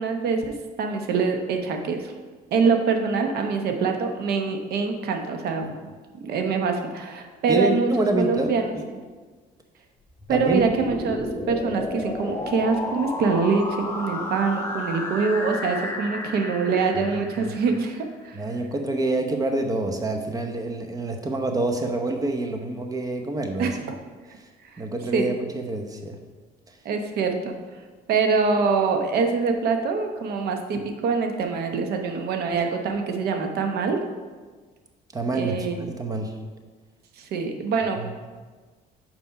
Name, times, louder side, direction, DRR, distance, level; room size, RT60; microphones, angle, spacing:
voice 1, 0.0-2.1 2.5-5.7 6.2-7.9 8.2-8.7 10.3-18.4 23.6-24.0 24.7-24.8 25.1-25.3 26.8-27.6 28.1-34.0 35.3-35.9 37.2-38.0, right 5 dB, 70° right, 5 dB, 0.9 m, -24 dB
voice 2, 7.5-8.9 10.3-10.6 17.1-17.6 18.3-23.7 24.4-24.5 24.8-26.2 35.1-35.6 35.9-36.3 38.0-38.3, right 2 dB, 20° right, 5 dB, 0.8 m, -27 dB
sound 1, 10.1-18.0, left 2 dB, 15° left, 1.0 m, -33 dB
5.5 x 4.4 x 5.7 m, 1.4 s
cardioid pair, 110°, 17 cm